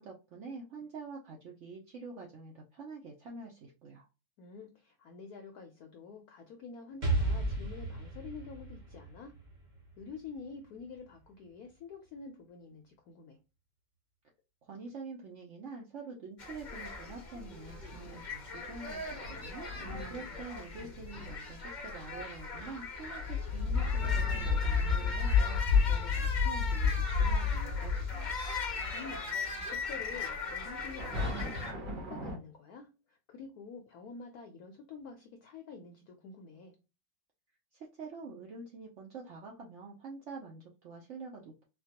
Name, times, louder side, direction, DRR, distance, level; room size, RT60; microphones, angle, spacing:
voice 1, 0.0-4.1 14.7-19.7 20.1-28.3 37.7-41.6, right 4 dB, 80° right, -1 dB, 0.6 m, -46 dB
voice 2, 4.4-9.3 10.0-13.4 19.8-20.4 28.9-36.7, left 5 dB, 70° left, 4 dB, 0.9 m, -48 dB
Explosion, 7.0-10.8, right 2 dB, 40° right, 0.7 m, -34 dB
sound 1, 16.4-31.7, left 4 dB, 55° left, 0.5 m, -40 dB
sound 2, 17.7-18.3 19.1-20.4 20.8-21.4 21.9-22.2 22.6-22.8 23.1-29.2 29.4-29.5 30.6-32.4, left 5 dB, 60° right, 2.1 m, -31 dB
4.3 x 2.3 x 2.8 m, 0.29 s
omnidirectional pair, 2.1 m